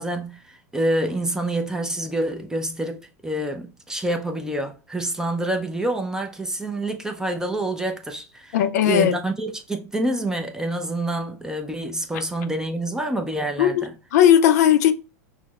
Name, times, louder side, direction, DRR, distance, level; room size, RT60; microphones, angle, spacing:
voice 1, 0.0-8.6 8.8-13.9, right 1 dB, 5° right, 0.5 m, -27 dB
voice 2, 8.5-9.2 13.6-14.9, left 10 dB, 70° left, 0.4 m, -17 dB
5.8 x 2.0 x 2.3 m
hypercardioid pair, 115°, 9 cm